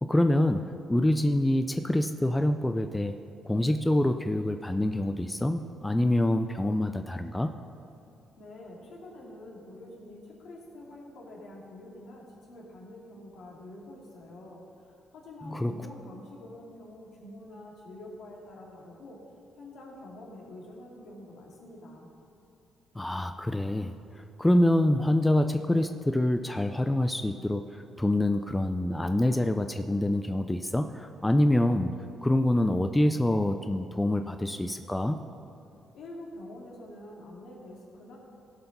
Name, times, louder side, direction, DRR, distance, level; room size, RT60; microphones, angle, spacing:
voice 1, 0.0-3.1 3.4-7.5 15.4-15.8 23.0-31.9 32.2-35.3, left 1 dB, 10° left, 7 dB, 0.4 m, -26 dB
voice 2, 8.4-19.2 19.6-22.1 35.9-38.2, left 1 dB, 75° left, -3 dB, 2.8 m, -46 dB
16.5 x 5.7 x 5.4 m, 2.7 s
cardioid pair, 90°, 0 cm